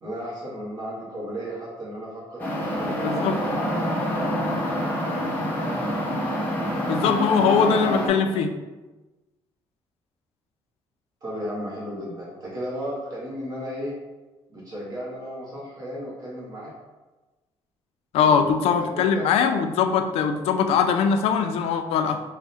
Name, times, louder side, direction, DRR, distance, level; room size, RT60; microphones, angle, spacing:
voice 1, 0.0-3.5 4.6-4.9 5.6-6.0 11.2-14.0 14.5-16.7 18.2-19.3, equal, 40° right, -6 dB, 0.9 m, -35 dB
sound 1, 2.4-8.1, equal, 20° left, 0.6 m, -26 dB
voice 2, 3.0-3.4 6.9-8.5 18.1-22.2, left 6 dB, 90° left, 7 dB, 0.4 m, -21 dB
3.5 x 2.1 x 4.0 m, 1.2 s
cardioid pair, 170°, 10 cm